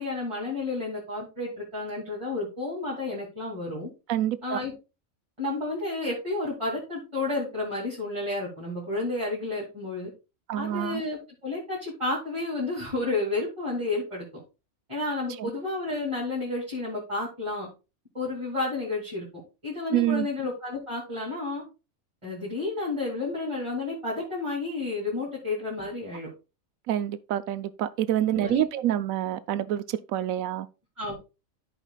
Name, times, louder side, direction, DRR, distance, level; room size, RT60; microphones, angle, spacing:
voice 1, 0.0-3.9 4.4-4.7 5.4-10.1 10.5-14.2 14.9-17.7 18.1-19.3 19.6-21.6 22.2-26.3 28.3-28.6 31.0-31.1, left 2 dB, 20° right, 2.6 m, -31 dB
voice 2, 4.1-4.6 10.5-11.0 15.4-15.5 19.9-20.3 26.9-30.7, right 12 dB, 85° right, 1.0 m, -27 dB
13.5 x 4.9 x 2.3 m
omnidirectional pair, 1.4 m